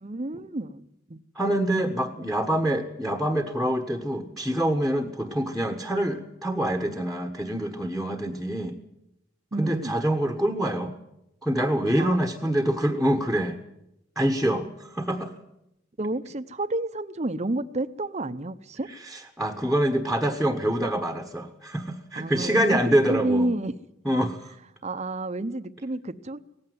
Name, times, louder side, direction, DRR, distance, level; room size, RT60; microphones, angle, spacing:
voice 1, 0.0-1.2 9.5-10.1 12.0-12.6 14.6-14.7 16.0-18.9 20.6-20.7 22.2-22.8 23.1-23.7 24.8-26.4, right 2 dB, 35° right, 12 dB, 0.8 m, -30 dB
voice 2, 1.3-8.8 9.6-10.9 11.4-13.6 14.1-15.3 18.9-23.5 24.0-24.4, right 1 dB, ahead, 5 dB, 1.3 m, -25 dB
18.5 x 15.5 x 9.5 m, 0.83 s
head